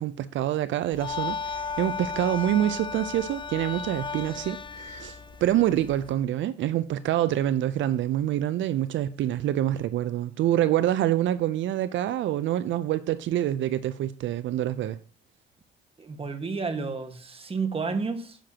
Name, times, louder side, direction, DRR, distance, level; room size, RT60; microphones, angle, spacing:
voice 1, 0.0-15.0, right 12 dB, 70° right, 0.5 m, -26 dB
sound 1, 0.9-6.1, left 5 dB, 25° left, 0.5 m, -35 dB
voice 2, 16.0-18.4, right 4 dB, 30° right, 1.5 m, -31 dB
10.0 x 7.6 x 2.9 m
cardioid pair, 90°, 20 cm